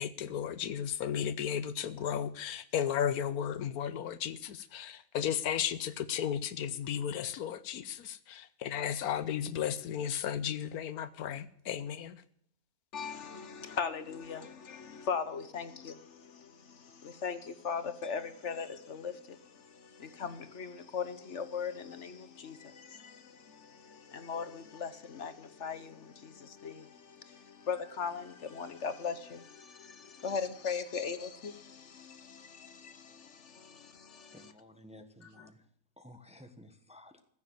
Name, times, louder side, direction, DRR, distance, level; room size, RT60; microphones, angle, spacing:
voice 1, 0.0-12.2, left 9 dB, 80° left, 1.2 m, -34 dB
voice 2, 12.9-34.5 35.4-35.5, left 6 dB, 55° left, 1.2 m, -39 dB
voice 3, 34.3-35.6 36.0-37.2, left 1 dB, 5° right, 1.1 m, -54 dB
15.0 x 7.2 x 7.9 m
omnidirectional pair, 1.6 m